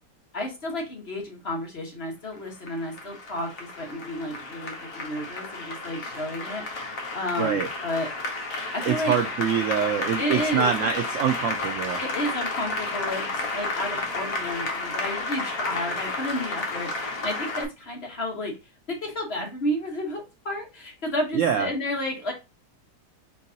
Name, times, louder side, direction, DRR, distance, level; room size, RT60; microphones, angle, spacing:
voice 1, 0.3-6.6 7.1-8.1 8.7-9.2 10.2-10.7 12.0-18.6 18.9-22.3, left 1 dB, 40° left, 1 dB, 1.3 m, -31 dB
Applause, 2.3-17.6, left 3 dB, 55° left, 1.4 m, -32 dB
voice 2, 7.4-7.7 8.8-12.0 21.3-21.7, right 7 dB, 90° right, 6 dB, 0.6 m, -25 dB
4.5 x 4.0 x 2.8 m, 0.26 s
omnidirectional pair, 1.9 m